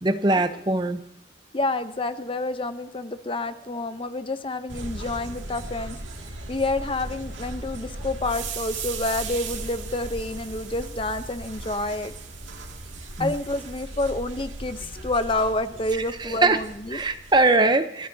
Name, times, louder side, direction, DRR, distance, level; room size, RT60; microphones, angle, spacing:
voice 1, 0.0-1.0 13.2-13.3 16.0-16.6 16.9-18.1, right 2 dB, 25° right, 9 dB, 0.8 m, -21 dB
voice 2, 1.5-6.0 6.5-12.1 13.2-17.0, left 2 dB, 30° left, 10 dB, 0.7 m, -28 dB
sound 1, 4.7-17.5, right 3 dB, 90° right, 2.3 m, -37 dB
28.0 x 13.5 x 2.8 m, 0.75 s
head